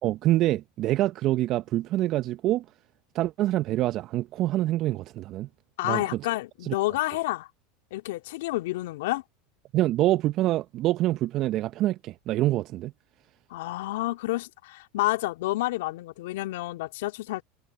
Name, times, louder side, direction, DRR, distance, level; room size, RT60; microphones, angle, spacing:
voice 1, 0.0-2.6 3.1-5.5 5.8-6.2 6.6-6.7 9.7-12.9, right 15 dB, 50° right, 1.0 m, -26 dB
voice 2, 5.8-7.5 7.9-9.2 13.5-17.4, left 18 dB, 70° left, 2.5 m, -29 dB
hypercardioid pair, 85°, 0 cm